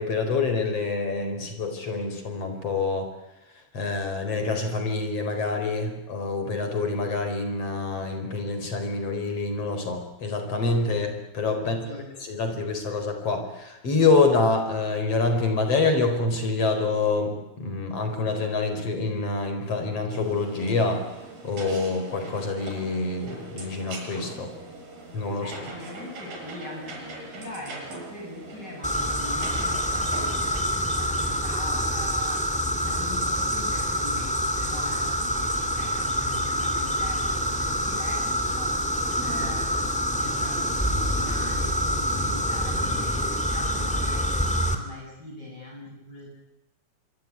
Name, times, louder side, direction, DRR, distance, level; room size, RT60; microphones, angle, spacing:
voice 1, 0.0-3.1 3.7-21.0 21.4-24.5 25.1-25.6, left 3 dB, 45° left, 7 dB, 5.4 m, -26 dB
voice 2, 11.6-12.1 25.4-32.5 32.8-46.3, left 1 dB, 30° left, -2 dB, 8.1 m, -41 dB
sound 1, 20.1-30.6, right 2 dB, 85° right, 9.0 m, -41 dB
sound 2, 28.8-44.8, equal, ahead, 2.7 m, -26 dB
25.0 x 24.0 x 9.7 m, 1.0 s
omnidirectional pair, 3.9 m